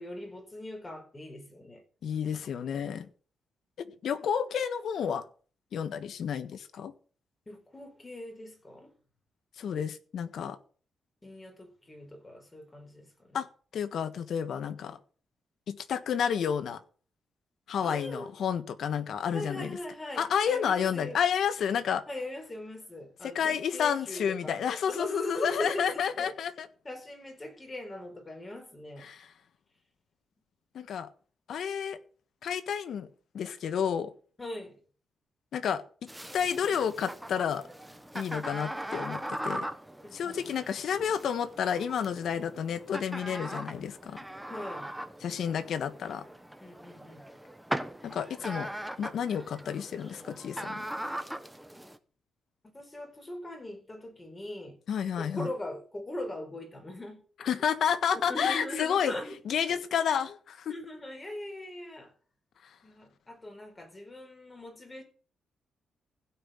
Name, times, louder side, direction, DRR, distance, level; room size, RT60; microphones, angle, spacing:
voice 1, 0.0-1.8 7.5-8.9 11.2-13.4 17.8-18.3 19.3-21.2 22.1-24.6 24.9-26.3 26.8-29.1 34.4-34.8 40.0-40.6 44.5-44.9 46.6-47.4 52.6-54.8 55.2-57.5 57.9-60.0 60.7-62.1 62.8-65.0, left 1 dB, 15° left, 4.5 m, -41 dB
voice 2, 2.0-3.1 3.8-5.2 5.7-6.9 9.6-10.6 13.3-13.5 13.7-15.0 15.7-16.8 17.7-19.8 20.2-22.0 23.3-26.7 29.0-29.3 30.7-31.1 31.5-32.0 32.4-33.1 33.3-34.1 35.5-37.7 38.1-39.7 40.1-44.2 45.2-46.3 48.0-48.7 49.0-50.9 54.9-55.5 57.4-59.1 59.5-60.7, left 8 dB, 60° left, 1.4 m, -30 dB
sound 1, 36.1-52.0, right 1 dB, 5° right, 1.1 m, -40 dB
16.0 x 5.7 x 9.0 m
cardioid pair, 150°, 0 cm